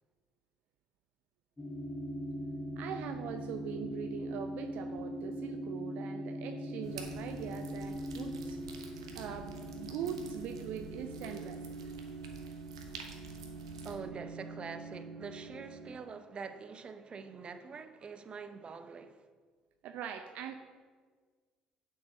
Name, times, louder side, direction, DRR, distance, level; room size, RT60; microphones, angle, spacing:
sound 1, 1.6-15.9, right 1 dB, 20° left, 2.5 m, -42 dB
voice 1, 2.8-8.6 9.1-11.9 19.8-20.5, right 8 dB, 60° right, 0.6 m, -42 dB
sound 2, 6.8-13.9, right 4 dB, 80° right, 1.1 m, -50 dB
voice 2, 13.8-19.3, right 5 dB, 35° right, 0.9 m, -45 dB
9.2 x 7.8 x 5.3 m
figure-of-eight pair, 55°, 3 cm